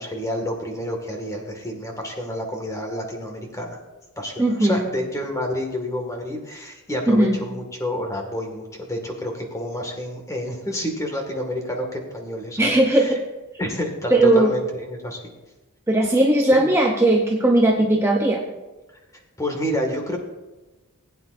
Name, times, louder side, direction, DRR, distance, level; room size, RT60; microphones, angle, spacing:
voice 1, 0.0-3.8 4.2-13.2 13.6-15.2 16.5-16.6 19.4-20.2, left 1 dB, 15° left, 2 dB, 1.9 m, -29 dB
voice 2, 4.4-4.9 7.1-7.5 12.6-13.2 14.1-14.5 15.9-18.4, right 1 dB, 10° right, 0 dB, 0.8 m, -18 dB
19.5 x 9.1 x 2.6 m, 1.1 s
head